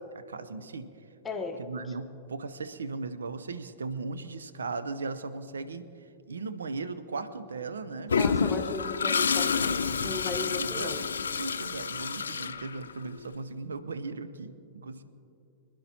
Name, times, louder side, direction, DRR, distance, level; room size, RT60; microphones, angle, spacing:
voice 1, 0.1-0.9 1.6-8.2 10.4-10.9 11.4-15.0, right 4 dB, 70° right, 11 dB, 0.6 m, -37 dB
voice 2, 1.2-1.6 8.2-11.0, left 4 dB, 15° left, 4 dB, 0.9 m, -36 dB
Toilet flush, 8.1-13.2, left 5 dB, 70° left, 0.5 m, -29 dB
26.0 x 10.5 x 2.8 m, 2.6 s
figure-of-eight pair, 95°, 0 cm